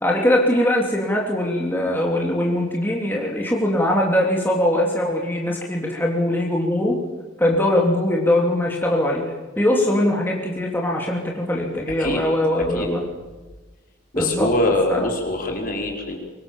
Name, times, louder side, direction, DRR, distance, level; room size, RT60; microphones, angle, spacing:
voice 1, 0.0-7.0 7.4-9.2 9.6-13.0 14.1-14.5 14.9-15.1, left 1 dB, 10° left, -1 dB, 3.3 m, -21 dB
voice 2, 14.1-16.2, left 1 dB, 45° left, 1 dB, 5.0 m, -23 dB
24.5 x 23.5 x 7.4 m, 1.2 s
head